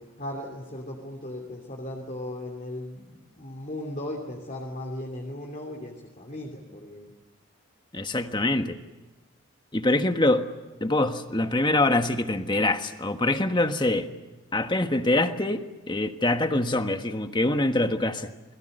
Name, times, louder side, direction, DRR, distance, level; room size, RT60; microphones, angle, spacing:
voice 1, 0.0-7.1, left 1 dB, 35° left, 1 dB, 2.9 m, -37 dB
voice 2, 7.9-8.8 9.7-10.5 10.8-14.1 14.5-18.3, left 2 dB, 20° left, 7 dB, 1.4 m, -24 dB
29.5 x 21.5 x 6.7 m, 1.1 s
head